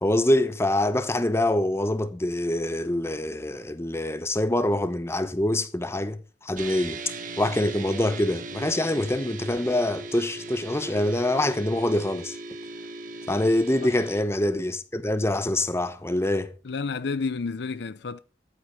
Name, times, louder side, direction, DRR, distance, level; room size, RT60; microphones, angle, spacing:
voice 1, 0.0-7.0 7.4-12.4 13.3-16.5, left 1 dB, 15° left, 1.0 m, -25 dB
sound 1, 6.6-14.2, right 2 dB, 50° right, 1.5 m, -38 dB
voice 2, 16.6-18.2, left 4 dB, 65° left, 0.6 m, -30 dB
13.0 x 8.6 x 5.1 m
head